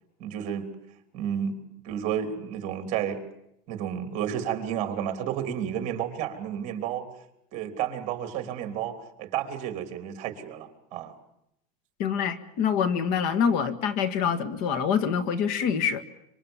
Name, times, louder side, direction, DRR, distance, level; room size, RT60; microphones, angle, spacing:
voice 1, 0.2-0.7 1.1-3.2 3.7-7.1 7.5-11.1, right 9 dB, 40° right, 7 dB, 3.4 m, -31 dB
voice 2, 12.0-16.0, left 7 dB, 50° left, 12 dB, 1.9 m, -25 dB
26.5 x 25.5 x 7.3 m, 0.80 s
cardioid pair, 170°, 18 cm